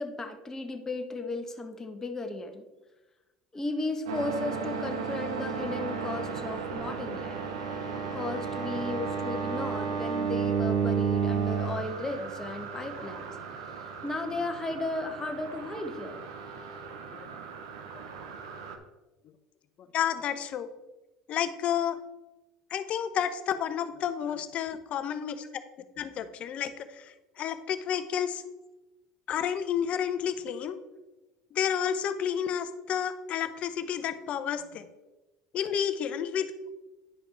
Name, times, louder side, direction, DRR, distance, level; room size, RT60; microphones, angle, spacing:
voice 1, 0.0-2.6 3.5-7.4 8.1-13.3 14.0-16.2 25.0-25.1, left 2 dB, 20° left, 3 dB, 1.3 m, -35 dB
sound 1, 4.1-18.8, right 6 dB, 85° right, 0.9 m, -33 dB
voice 2, 19.8-20.7 21.3-22.0 22.7-25.6 26.0-28.4 29.3-30.8 31.5-34.9 35.5-36.7, left 8 dB, 50° left, 10 dB, 0.8 m, -31 dB
9.9 x 5.0 x 4.4 m, 1.1 s
hypercardioid pair, 85°, 3 cm